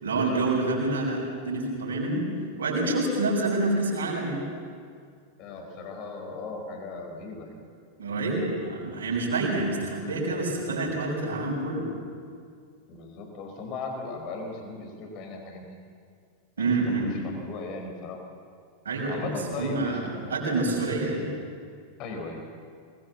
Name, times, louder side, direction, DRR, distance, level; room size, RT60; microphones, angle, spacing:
voice 1, 0.0-2.3 2.6-4.5 8.0-11.9 16.6-17.3 18.8-20.0 20.3-21.3, right 2 dB, 70° right, -2 dB, 6.4 m, -27 dB
voice 2, 5.4-7.7 12.9-15.8 16.6-18.2 19.1-20.4 22.0-22.4, left 3 dB, 40° left, 3 dB, 4.4 m, -37 dB
23.5 x 20.5 x 7.3 m, 2.2 s
figure-of-eight pair, 90°, 0 cm